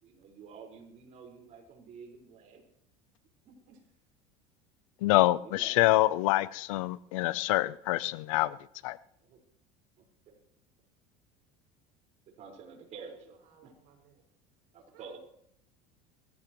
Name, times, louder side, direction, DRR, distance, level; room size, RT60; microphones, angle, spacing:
voice 1, 0.0-2.6 3.4-3.8 5.4-5.9 9.2-9.4 10.0-10.4 12.3-13.3 13.6-13.7 14.7-15.2, right 5 dB, 45° right, 2 dB, 5.0 m, -50 dB
voice 2, 5.0-8.6 8.8-9.0, left 17 dB, 80° left, 18 dB, 0.7 m, -26 dB
voice 3, 12.9-14.2 14.7-15.2, right 7 dB, 65° right, 2 dB, 7.0 m, -59 dB
23.0 x 16.0 x 3.1 m, 0.71 s
supercardioid pair, 115°, 16 cm